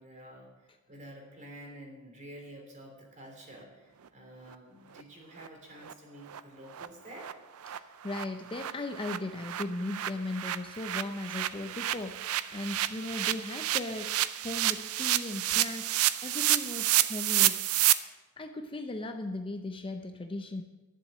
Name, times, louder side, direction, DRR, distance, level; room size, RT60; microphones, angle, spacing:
voice 1, 0.0-7.3, right 1 dB, 35° right, 1 dB, 3.1 m, -49 dB
sound 1, 5.0-5.1 5.4-5.5 5.8-5.9 6.3-6.4 6.7-6.9 7.2-7.3 7.6-7.8 8.0-17.9, right 14 dB, 70° right, 0.5 m, -29 dB
voice 2, 7.7-17.7 18.4-20.6, left 2 dB, 25° left, 6 dB, 0.6 m, -37 dB
11.0 x 7.4 x 7.4 m, 1.1 s
head